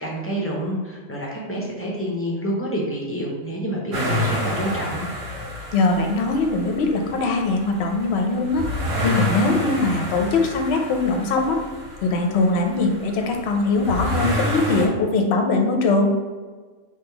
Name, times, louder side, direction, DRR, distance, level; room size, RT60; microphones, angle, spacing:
voice 1, 0.0-5.0, equal, 15° left, -3 dB, 0.6 m, -28 dB
sound 1, 3.9-14.9, equal, 70° right, 1.3 m, -29 dB
voice 2, 5.7-8.6 9.0-11.6 12.0-16.1, left 3 dB, 60° left, 3 dB, 0.8 m, -21 dB
3.6 x 3.0 x 4.5 m, 1.4 s
omnidirectional pair, 1.4 m